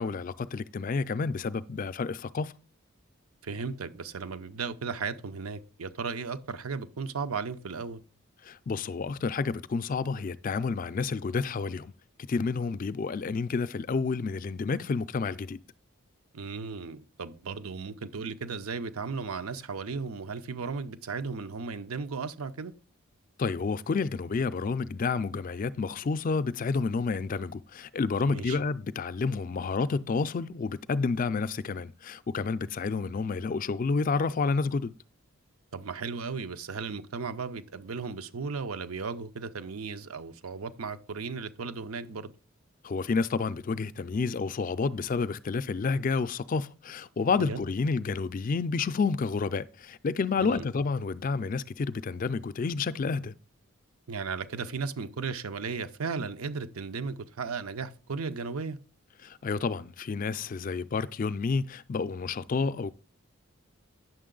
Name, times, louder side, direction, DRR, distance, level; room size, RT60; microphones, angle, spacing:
voice 1, 0.0-2.5 8.4-11.9 12.3-15.6 23.4-34.9 42.8-53.3 59.2-62.9, left 4 dB, 40° left, 0.3 m, -30 dB
voice 2, 3.4-8.0 16.3-22.7 28.2-28.6 35.7-42.3 47.4-47.6 50.4-50.7 54.1-58.8, right 5 dB, 85° right, 0.7 m, -35 dB
9.2 x 6.6 x 3.8 m
head